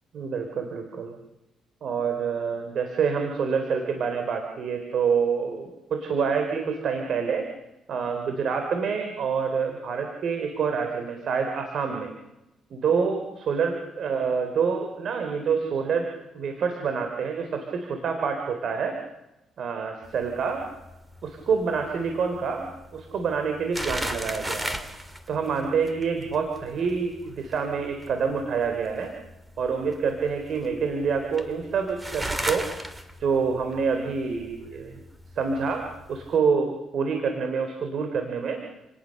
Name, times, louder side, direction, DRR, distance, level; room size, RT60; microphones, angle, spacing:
voice 1, 0.1-1.2 1.8-7.5 7.9-12.1 12.7-19.0 19.6-20.6 21.2-22.7 22.9-24.8 25.3-29.1 29.6-32.7 33.2-34.9 35.4-38.6, right 5 dB, 65° right, 5 dB, 3.9 m, -27 dB
sound 1, 20.0-36.4, right 1 dB, 10° right, 2.8 m, -38 dB
29.5 x 19.5 x 6.7 m, 0.94 s
cardioid pair, 90°, 0 cm